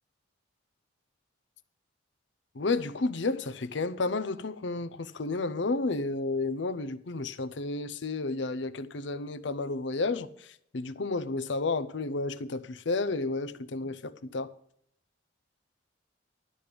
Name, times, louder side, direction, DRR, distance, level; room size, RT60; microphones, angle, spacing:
voice 1, 2.6-10.3 10.7-14.5, left 3 dB, 70° left, 0.6 m, -31 dB
12.0 x 5.2 x 8.4 m
head